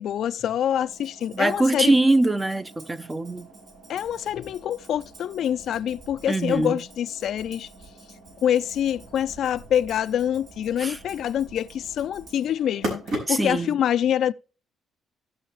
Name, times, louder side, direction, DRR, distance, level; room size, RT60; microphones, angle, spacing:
voice 1, 0.0-1.9 3.9-7.7 8.4-13.0 13.3-14.3, left 10 dB, 70° left, 0.4 m, -25 dB
sound 1, 0.8-13.7, right 1 dB, 80° right, 4.5 m, -41 dB
Tambourine, 0.9-12.6, right 2 dB, 65° right, 3.6 m, -54 dB
voice 2, 1.3-3.5 6.3-6.8 10.8-11.0 13.3-13.8, right 2 dB, 15° right, 0.6 m, -23 dB
16.5 x 5.5 x 3.1 m
cardioid pair, 90°, 0 cm